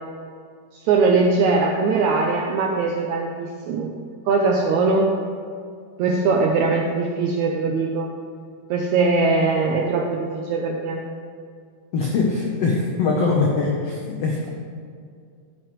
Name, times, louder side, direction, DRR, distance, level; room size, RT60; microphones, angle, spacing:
voice 1, 0.7-3.9 4.3-5.1 6.0-8.1 8.7-11.0, right 4 dB, 80° right, 1 dB, 1.6 m, -21 dB
voice 2, 11.9-14.5, left 4 dB, 85° left, -1 dB, 1.3 m, -22 dB
10.5 x 9.2 x 3.1 m, 2.2 s
omnidirectional pair, 4.1 m